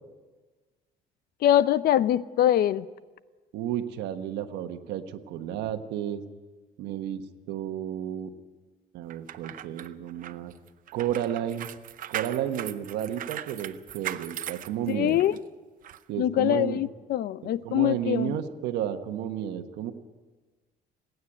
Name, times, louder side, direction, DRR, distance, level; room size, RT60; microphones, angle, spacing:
voice 1, 1.4-2.9 14.9-15.4 16.2-18.4, left 12 dB, 65° left, 0.7 m, -23 dB
voice 2, 3.5-6.2 6.8-8.3 8.9-10.5 10.9-11.7 12.1-15.2 16.1-16.8 17.6-19.9, right 10 dB, 90° right, 1.3 m, -32 dB
sound 1, 9.1-15.4 15.8-16.0, right 11 dB, 55° right, 0.7 m, -39 dB
28.0 x 9.5 x 9.9 m
cardioid pair, 110°, 17 cm